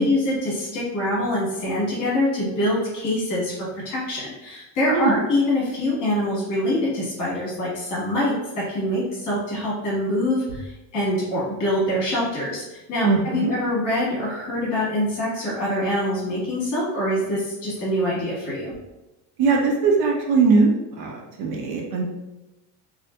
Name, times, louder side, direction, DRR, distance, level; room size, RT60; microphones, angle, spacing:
voice 1, 0.0-18.7, left 1 dB, 40° left, -6 dB, 1.3 m, -24 dB
voice 2, 13.0-13.5 19.4-22.0, right 4 dB, 55° right, 0 dB, 0.5 m, -20 dB
2.6 x 2.5 x 2.2 m, 1.0 s
cardioid pair, 150°, 45 cm